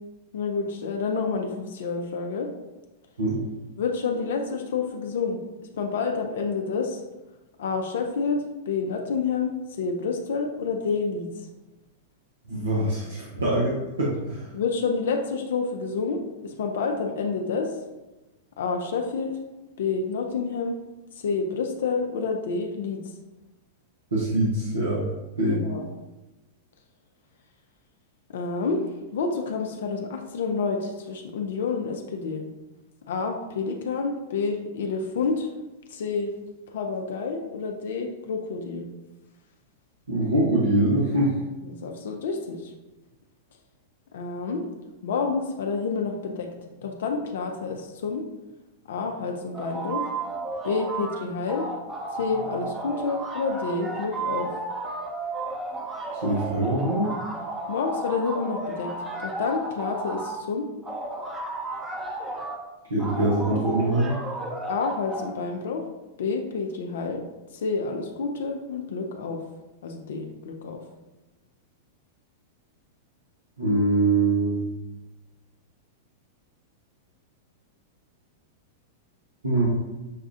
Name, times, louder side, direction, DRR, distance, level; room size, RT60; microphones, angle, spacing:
voice 1, 0.3-2.5 3.8-5.4 5.7-7.0 7.6-11.3 14.5-17.8 18.6-19.4 19.8-20.8 21.2-23.0 25.5-25.9 28.3-28.8 29.1-32.4 33.1-35.5 35.9-36.3 36.7-38.9 41.6-42.7 44.1-44.7 45.0-46.5 46.8-48.2 48.9-50.1 50.6-51.7 52.2-54.5 57.7-58.9 59.2-60.7 64.6-65.8 66.2-67.2 67.5-69.4 69.8-70.8, left 4 dB, 65° left, 3 dB, 0.4 m, -28 dB
voice 2, 12.5-14.5 24.1-25.0 25.4-25.6 40.1-41.3 56.1-57.1 62.9-64.1 73.6-74.6 79.4-79.7, right 2 dB, 80° right, -6 dB, 0.8 m, -23 dB
sound 1, 49.5-51.2 51.5-60.4 60.8-62.6 63.0-65.3, right 2 dB, 15° right, 0.7 m, -33 dB
6.2 x 2.3 x 2.5 m, 1.1 s
figure-of-eight pair, 100°, 0 cm